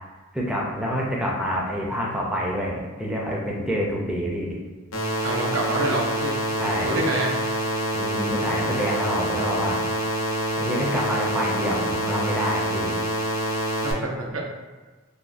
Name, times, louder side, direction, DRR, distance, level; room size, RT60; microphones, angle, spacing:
voice 1, 0.3-4.5 6.6-6.9 7.9-9.8 10.6-12.9, equal, 5° right, -3 dB, 0.4 m, -27 dB
sound 1, 4.9-13.9, equal, 80° left, 0.6 m, -26 dB
voice 2, 5.2-6.4 6.8-7.4 13.8-14.4, right 1 dB, 80° right, 0 dB, 0.6 m, -27 dB
3.5 x 2.3 x 2.4 m, 1.3 s
head